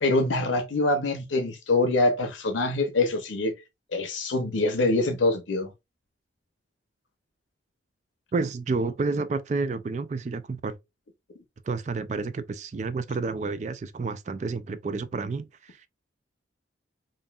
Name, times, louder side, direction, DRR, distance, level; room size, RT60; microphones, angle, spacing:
voice 1, 0.0-3.5 3.9-5.7, left 2 dB, 90° left, 0.7 m, -24 dB
voice 2, 8.3-10.8 11.7-15.9, right 4 dB, 40° right, 0.3 m, -30 dB
5.2 x 2.6 x 2.3 m
head